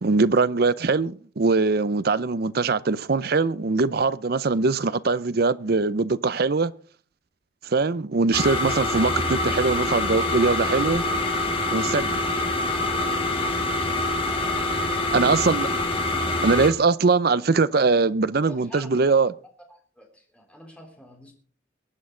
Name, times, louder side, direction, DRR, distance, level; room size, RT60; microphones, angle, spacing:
voice 1, 0.0-6.7 7.6-11.0 11.7-12.1 15.1-15.7 16.4-19.3, right 4 dB, 55° right, 0.6 m, -22 dB
sound 1, 8.3-16.7, left 2 dB, 30° left, 2.0 m, -25 dB
voice 2, 14.3-14.7 18.4-19.2 19.7-21.3, left 1 dB, 5° left, 3.5 m, -47 dB
23.0 x 8.6 x 3.8 m
head